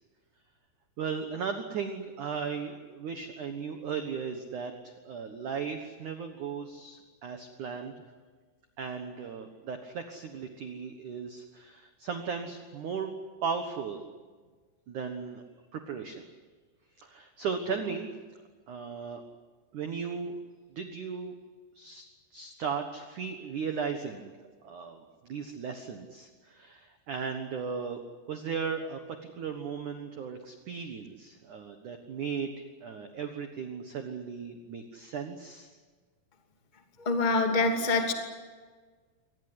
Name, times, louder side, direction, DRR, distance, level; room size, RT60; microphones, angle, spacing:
voice 1, 1.0-7.9 8.8-13.1 13.4-14.0 14.9-15.4 15.7-16.2 17.0-18.1 18.7-19.2 19.7-20.4 20.7-21.3 21.7-22.0 22.3-24.3 24.6-28.0 28.3-32.5 32.8-35.7, right 6 dB, 90° right, 6 dB, 1.7 m, -36 dB
voice 2, 37.0-38.1, left 3 dB, 20° left, 3 dB, 1.1 m, -25 dB
24.5 x 19.0 x 9.9 m, 1.4 s
omnidirectional pair, 5.9 m